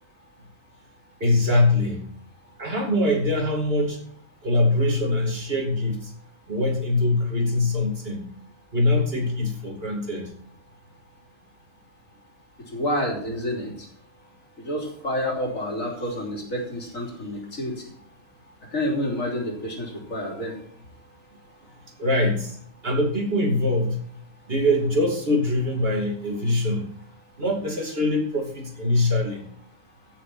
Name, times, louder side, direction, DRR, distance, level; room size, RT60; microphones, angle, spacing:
voice 1, 1.2-2.1 2.6-4.0 4.4-6.1 6.5-8.3 8.7-10.3 22.0-22.6 22.8-24.0 24.5-26.9 27.4-29.5, left 1 dB, 50° right, 1 dB, 2.8 m, -23 dB
voice 2, 12.7-13.7 14.6-17.8 18.7-20.5, left 1 dB, 85° left, 0 dB, 3.6 m, -28 dB
16.0 x 7.4 x 4.2 m, 0.62 s
omnidirectional pair, 1.3 m